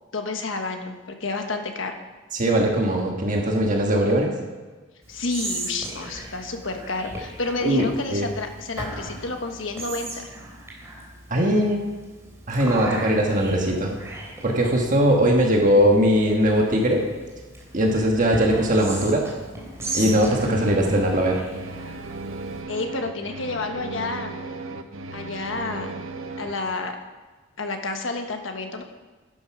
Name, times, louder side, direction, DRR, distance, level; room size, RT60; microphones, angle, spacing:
voice 1, 0.1-1.9 5.1-10.3 22.7-24.4 25.1-26.0 26.4-27.0 27.6-28.8, left 3 dB, 75° left, 5 dB, 1.3 m, -30 dB
voice 2, 2.3-4.3 7.6-8.3 11.3-11.8 12.5-13.9 14.4-17.0 17.7-19.3 19.9-21.4, equal, 40° right, 0 dB, 1.4 m, -20 dB
Whispering, 5.0-22.6, right 2 dB, 15° right, 3.2 m, -38 dB
sound 1, 19.8-26.5, right 3 dB, 90° right, 0.9 m, -35 dB
11.0 x 9.4 x 6.0 m, 1.3 s
head